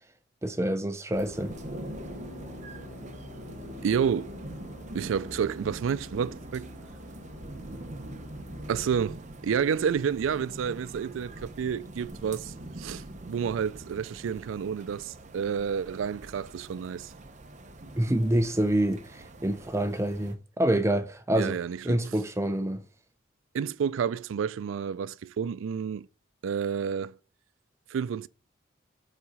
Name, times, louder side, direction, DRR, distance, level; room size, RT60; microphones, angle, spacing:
voice 1, 0.4-1.5 18.0-21.6 21.8-22.8, right 1 dB, 15° right, 0.5 m, -27 dB
sound 1, 1.1-20.4, right 1 dB, 40° right, 0.8 m, -43 dB
sound 2, 1.2-9.1, left 2 dB, 85° left, 1.1 m, -47 dB
voice 2, 3.8-4.3 4.9-6.7 8.7-17.1 21.4-22.0 23.5-26.1 26.4-27.2 27.9-28.3, right 7 dB, 85° right, 0.3 m, -30 dB
7.3 x 4.0 x 4.9 m
head